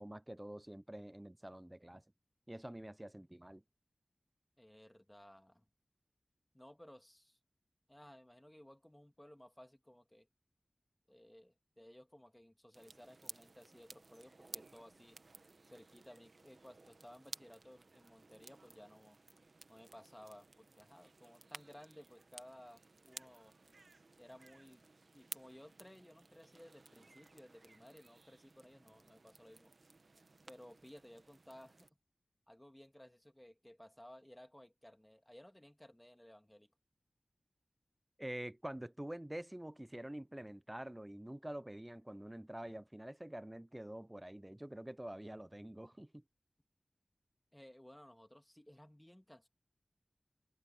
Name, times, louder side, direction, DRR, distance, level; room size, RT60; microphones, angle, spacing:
voice 1, 0.0-2.0 2.5-3.6 38.2-46.2, right 1 dB, 15° right, 0.4 m, -47 dB
voice 2, 4.6-5.7 6.5-7.4 7.9-10.3 11.1-15.2 15.6-19.2 19.7-23.6 24.2-24.9 25.1-29.7 30.5-31.9 32.5-36.7 47.5-49.5, left 1 dB, 15° left, 2.2 m, -58 dB
sound 1, 12.7-31.9, right 3 dB, 65° right, 1.4 m, -56 dB
cardioid pair, 45°, 0 cm